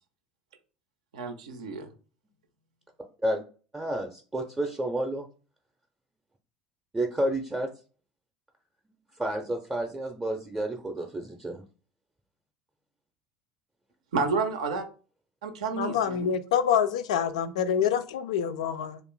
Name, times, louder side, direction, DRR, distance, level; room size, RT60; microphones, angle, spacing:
voice 1, 1.1-1.9 14.1-14.9 15.4-16.3, right 4 dB, 70° right, 0.5 m, -30 dB
voice 2, 3.7-5.3 6.9-7.7 9.2-11.6, right 1 dB, 15° right, 0.5 m, -30 dB
voice 3, 15.7-19.0, left 8 dB, 70° left, 0.3 m, -26 dB
2.5 x 2.4 x 3.7 m
figure-of-eight pair, 65°, 4 cm